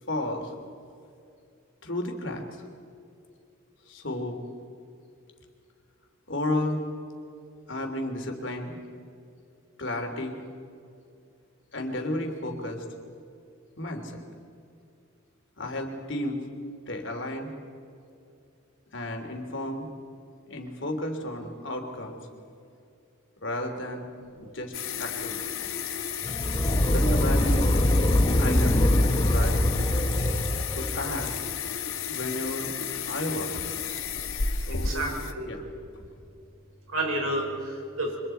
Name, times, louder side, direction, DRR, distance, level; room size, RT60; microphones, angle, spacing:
voice 1, 0.1-0.5 1.8-2.6 3.9-4.4 6.3-6.8 7.7-8.8 9.8-10.4 11.7-12.8 13.8-14.2 15.6-16.4 16.9-17.5 18.9-19.9 20.5-22.2 23.4-24.1 24.4-24.7 25.0-25.7 26.9-27.7 28.4-29.6 30.7-31.4 32.1-32.7 33.0-33.5 34.7-35.6 35.9-36.2, left 1 dB, 60° left, 3 dB, 3.2 m, -33 dB
sound 1, 24.7-35.3, left 7 dB, 80° left, 1.5 m, -33 dB
sound 2, 26.2-31.4, left 1 dB, 25° left, 1.0 m, -23 dB
voice 2, 34.5-35.5 36.9-38.2, right 1 dB, 90° right, 0 dB, 5.6 m, -31 dB
29.0 x 25.0 x 4.5 m, 2.5 s
head